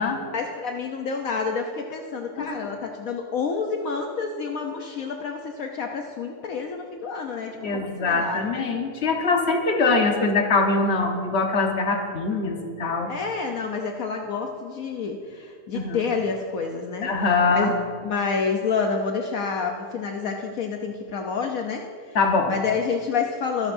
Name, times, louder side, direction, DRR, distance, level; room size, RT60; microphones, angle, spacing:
voice 1, 0.3-8.6 13.1-17.1 17.5-17.7 18.0-21.9 22.5-23.7, left 5 dB, 70° left, 2 dB, 1.2 m, -28 dB
voice 2, 7.6-13.1 15.7-16.0 17.0-17.7 22.1-22.5, left 3 dB, 45° left, 3 dB, 1.4 m, -23 dB
24.0 x 11.5 x 2.7 m, 2.2 s
omnidirectional pair, 1.6 m